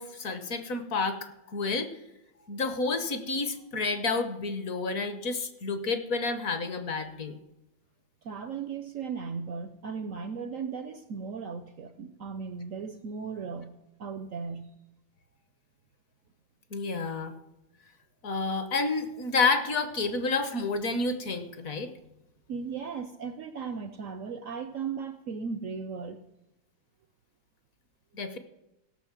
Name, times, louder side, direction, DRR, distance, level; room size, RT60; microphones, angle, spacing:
voice 1, 0.0-1.9 2.5-7.4 16.7-17.3 18.2-21.9 28.1-28.4, left 4 dB, 55° left, 10 dB, 1.2 m, -30 dB
voice 2, 8.2-13.7 14.0-14.7 22.5-26.2, right 5 dB, 75° right, 10 dB, 0.7 m, -36 dB
16.5 x 6.2 x 7.3 m, 0.94 s
omnidirectional pair, 2.1 m